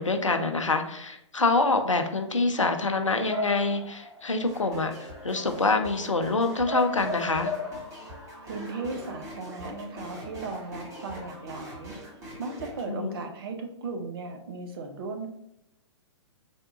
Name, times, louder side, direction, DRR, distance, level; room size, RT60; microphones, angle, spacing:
voice 1, 0.0-7.5 12.9-13.2, left 3 dB, 90° left, 6 dB, 0.5 m, -26 dB
Bark / Motor vehicle (road) / Siren, 2.5-11.3, left 2 dB, 80° right, 1.3 m, -39 dB
sound 1, 4.4-12.8, right 1 dB, 20° right, 1.1 m, -44 dB
voice 2, 8.1-11.9 12.4-15.3, right 3 dB, 50° right, 4 dB, 0.7 m, -37 dB
3.5 x 2.3 x 3.7 m, 0.80 s
figure-of-eight pair, 115°, 16 cm